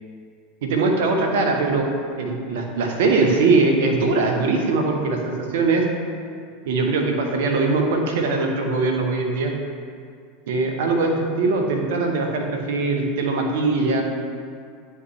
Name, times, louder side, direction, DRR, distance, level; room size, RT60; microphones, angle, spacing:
voice 1, 0.6-1.9 2.2-5.9 6.6-9.5 10.5-14.0, right 3 dB, 70° right, 3 dB, 1.1 m, -21 dB
9.3 x 5.7 x 3.2 m, 2.3 s
hypercardioid pair, 85°, 0 cm